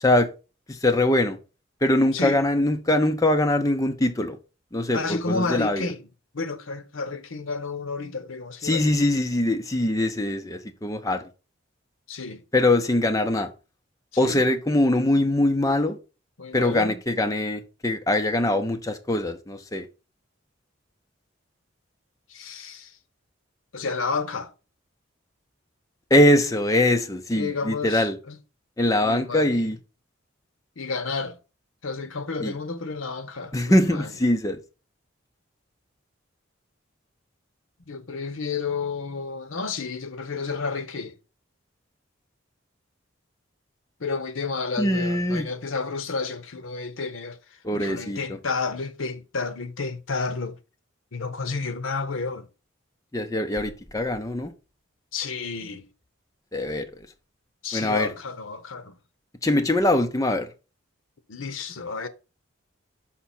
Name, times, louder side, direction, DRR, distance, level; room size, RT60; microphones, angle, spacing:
voice 1, 0.7-1.4 1.8-4.4 4.7-5.9 8.6-11.2 12.5-13.5 14.2-16.0 16.5-19.9 26.1-28.2 28.8-29.8 32.4-32.5 33.5-34.6 44.8-45.5 47.6-48.4 53.1-54.5 56.5-56.9 57.7-58.1 59.4-60.5, left 1 dB, 15° left, 0.6 m, -22 dB
voice 2, 4.9-6.0 6.3-8.9 12.1-12.4 14.2-14.4 16.4-17.0 22.3-22.9 23.7-24.5 27.3-28.4 29.0-29.7 30.8-31.4 31.8-34.1 37.9-41.1 44.0-47.4 47.7-50.5 51.1-52.4 55.1-55.8 57.6-59.0 61.3-62.1, left 4 dB, 80° left, 0.8 m, -31 dB
5.8 x 5.6 x 4.3 m
head